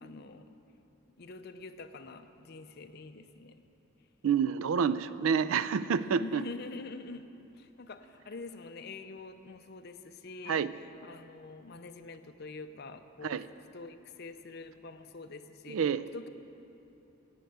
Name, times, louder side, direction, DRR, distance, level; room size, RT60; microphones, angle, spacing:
voice 1, 0.0-0.6 1.2-3.6 6.0-7.2 7.6-10.6 11.0-13.4 13.7-15.8 16.1-16.3, left 3 dB, 50° left, 8 dB, 0.5 m, -45 dB
voice 2, 4.2-6.4 10.5-10.7 13.2-13.5 15.7-16.1, right 6 dB, 80° right, 14 dB, 0.4 m, -28 dB
11.0 x 8.4 x 7.8 m, 3.0 s
head